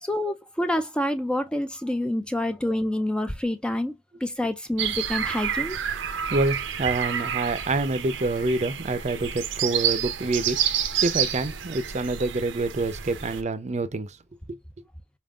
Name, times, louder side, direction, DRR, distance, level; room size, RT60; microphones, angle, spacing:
voice 1, 0.0-3.9 4.2-5.8, left 1 dB, 5° left, 0.4 m, -27 dB
sound 1, 4.8-13.4, right 9 dB, 85° right, 0.7 m, -29 dB
voice 2, 6.1-14.2 14.5-14.6, right 2 dB, 40° right, 0.6 m, -27 dB
4.6 x 3.6 x 2.3 m
head